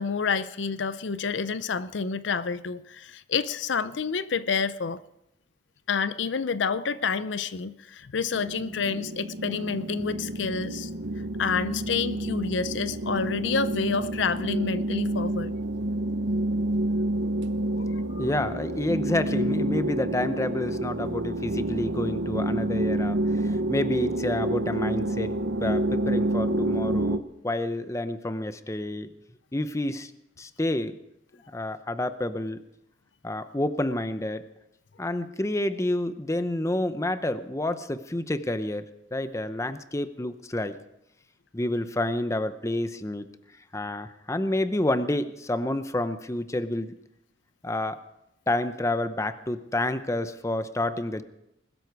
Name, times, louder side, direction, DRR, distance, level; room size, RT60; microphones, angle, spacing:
voice 1, 0.0-5.0 5.9-10.9 11.4-15.5 17.7-17.8 18.1-18.3, left 5 dB, 75° left, 15 dB, 0.6 m, -29 dB
sound 1, 8.3-27.2, right 1 dB, 75° right, 1.0 m, -28 dB
voice 2, 18.2-25.3 25.6-29.1 29.5-30.1 30.4-31.0 31.5-32.6 33.2-34.5 35.0-38.9 39.1-40.7 41.5-43.3 43.7-46.9 47.6-48.0 48.5-51.2, left 1 dB, 15° left, 11 dB, 0.7 m, -29 dB
21.0 x 13.0 x 4.7 m, 0.85 s
head